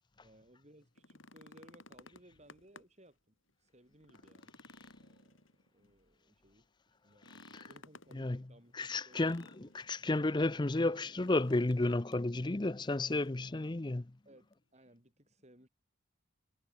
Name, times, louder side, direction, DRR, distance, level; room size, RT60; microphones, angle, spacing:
voice 1, 0.2-4.6 5.0-9.7 14.3-15.7, right 1 dB, 30° right, 5.4 m, -62 dB
sound 1, 0.8-3.1 3.5-3.6 4.0-5.9 7.1-8.2 9.1-10.0 11.2-11.8 12.1-12.2 12.8-13.4 14.5-14.6, left 2 dB, 70° left, 7.5 m, -57 dB
voice 2, 8.7-14.1, left 2 dB, 20° left, 0.5 m, -32 dB
head